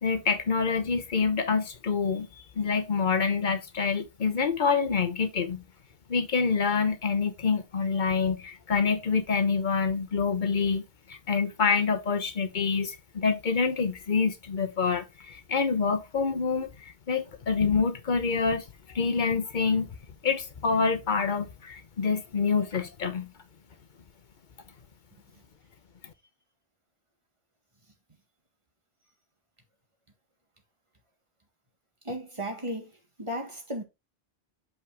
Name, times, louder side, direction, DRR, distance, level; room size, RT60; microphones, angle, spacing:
voice 1, 0.0-5.6 6.1-10.8 11.1-19.9 20.2-23.3, left 5 dB, 50° left, 1.0 m, -27 dB
voice 2, 32.0-32.9 33.2-33.8, equal, 30° right, 1.8 m, -34 dB
6.7 x 5.4 x 3.4 m
omnidirectional pair, 1.1 m